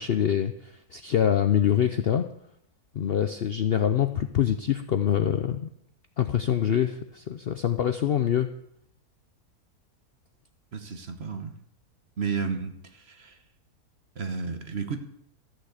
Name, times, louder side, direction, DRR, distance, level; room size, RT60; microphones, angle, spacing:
voice 1, 0.0-2.3 2.9-5.7 6.2-8.5, left 9 dB, 60° left, 8 dB, 0.6 m, -25 dB
voice 2, 10.7-11.5 12.2-13.4 14.1-15.0, right 5 dB, 45° right, 8 dB, 1.2 m, -32 dB
13.5 x 6.4 x 8.1 m, 0.73 s
omnidirectional pair, 1.6 m